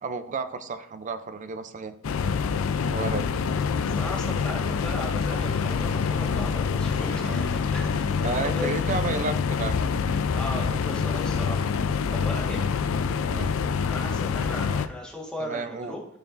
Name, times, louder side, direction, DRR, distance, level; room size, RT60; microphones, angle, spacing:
voice 1, 0.0-1.9 2.9-3.3 7.2-7.5 8.2-9.8 13.2-13.6 15.4-16.0, right 4 dB, 40° right, 10 dB, 0.4 m, -32 dB
sound 1, 2.0-14.9, left 6 dB, 85° left, 0.4 m, -26 dB
voice 2, 3.0-3.4 3.9-8.9 10.3-12.6 13.9-16.0, left 2 dB, 5° left, -3 dB, 1.5 m, -37 dB
sound 2, 4.2-12.7, equal, 70° left, 1.9 m, -45 dB
12.0 x 4.4 x 2.6 m, 0.72 s
head